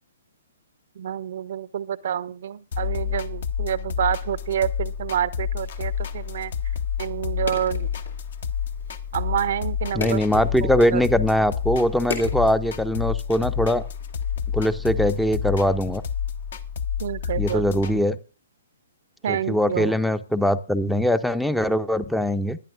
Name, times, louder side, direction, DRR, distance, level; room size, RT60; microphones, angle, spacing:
voice 1, 1.0-6.5 7.0-7.9 9.1-11.1 17.0-17.6 19.2-20.0, right 9 dB, 55° right, 17 dB, 0.5 m, -28 dB
sound 1, 2.7-17.9, left 8 dB, 60° left, 0.8 m, -29 dB
sound 2, 5.6-14.8, left 5 dB, 80° left, 2.5 m, -40 dB
voice 2, 9.9-13.8 14.5-16.0 17.4-18.2 19.3-22.6, equal, ahead, 14 dB, 0.5 m, -22 dB
20.0 x 10.5 x 2.5 m, 0.32 s
figure-of-eight pair, 125°, 0 cm